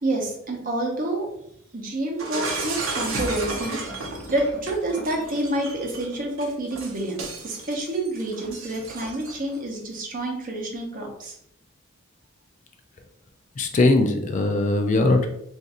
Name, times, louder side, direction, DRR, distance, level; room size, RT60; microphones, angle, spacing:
voice 1, 0.0-1.3 1.7-3.8 4.3-11.4, right 1 dB, 40° right, 1 dB, 0.7 m, -28 dB
Shatter, 2.2-9.6, right 3 dB, 80° right, 0.7 m, -33 dB
voice 2, 13.6-15.3, left 2 dB, 35° left, 5 dB, 0.3 m, -20 dB
2.5 x 2.5 x 4.0 m, 0.75 s
head